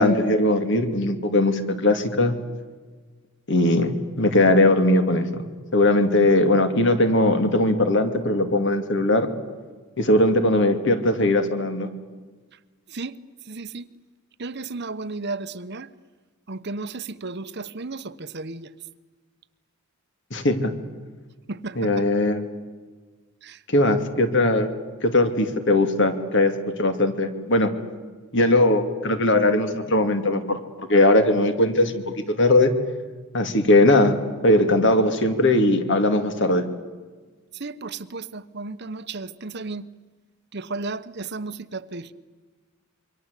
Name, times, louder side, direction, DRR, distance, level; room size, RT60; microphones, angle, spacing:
voice 1, 0.0-2.3 3.5-3.9 4.2-5.4 5.7-9.3 10.0-11.9 20.3-20.7 21.8-22.4 23.7-24.7 25.0-26.5 26.8-27.7 28.3-30.6 30.9-32.7 33.3-34.2 34.4-36.6, left 1 dB, 55° left, 2.6 m, -19 dB
voice 2, 13.5-13.9 14.4-15.9 16.5-18.7 21.5-22.1 23.4-23.6 37.6-39.9 40.5-42.1, right 3 dB, 50° right, 1.0 m, -34 dB
27.5 x 24.0 x 8.3 m
head